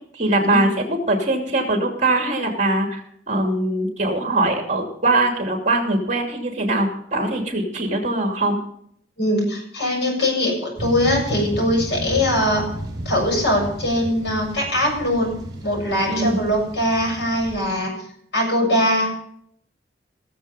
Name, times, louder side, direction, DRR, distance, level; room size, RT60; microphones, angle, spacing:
voice 1, 0.1-3.0 3.3-8.6 16.1-16.4, right 2 dB, 40° right, 2 dB, 2.8 m, -21 dB
voice 2, 9.2-12.6 13.1-15.3 15.6-17.9 18.3-19.1, left 1 dB, 80° left, 0 dB, 7.1 m, -21 dB
sound 1, 10.8-17.6, right 1 dB, 25° right, 3.6 m, -33 dB
18.5 x 7.4 x 5.4 m, 0.66 s
head